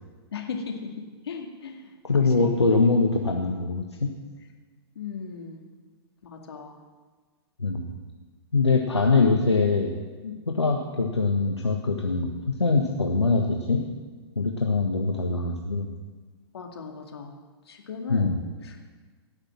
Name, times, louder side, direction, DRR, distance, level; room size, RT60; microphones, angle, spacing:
voice 1, 0.3-0.9 1.2-1.9 2.2-2.9 5.0-5.7 6.2-6.8 10.2-10.4 16.5-17.3 17.7-18.3 18.6-18.8, left 5 dB, 65° left, 2 dB, 2.4 m, -37 dB
voice 2, 2.0-4.1 7.6-7.9 8.5-9.9 10.5-13.8 14.4-15.9 18.1-18.4, left 3 dB, 90° left, 1 dB, 1.3 m, -23 dB
18.0 x 6.6 x 7.6 m, 1.4 s
figure-of-eight pair, 110°, 14 cm